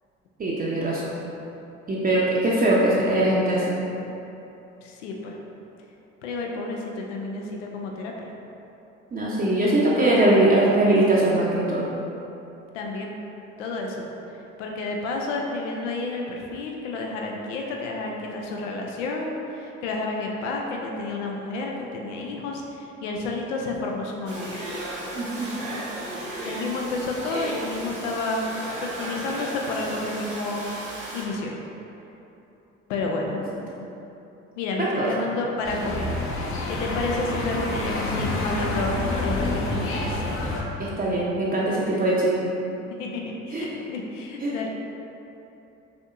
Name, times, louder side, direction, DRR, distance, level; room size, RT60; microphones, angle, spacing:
voice 1, 0.4-1.2 1.9-3.7 9.1-11.9 25.1-25.5 34.8-35.3 41.0-42.5 43.5-43.7 44.4-44.5, right 1 dB, 25° right, -6 dB, 0.6 m, -21 dB
voice 2, 4.8-5.4 6.2-8.3 12.7-13.2 13.6-14.1 14.6-24.6 26.4-28.5 28.8-30.6 31.1-31.5 32.9-33.4 34.6-36.1 36.7-40.2 43.0-44.7, left 3 dB, 75° left, 0 dB, 0.5 m, -30 dB
Domestic sounds home sounds, 24.3-31.3, right 1 dB, 85° right, 0.6 m, -34 dB
sound 1, 35.6-40.6, left 2 dB, 35° left, 0.7 m, -28 dB
5.0 x 3.5 x 2.5 m, 3.0 s
figure-of-eight pair, 45°, 37 cm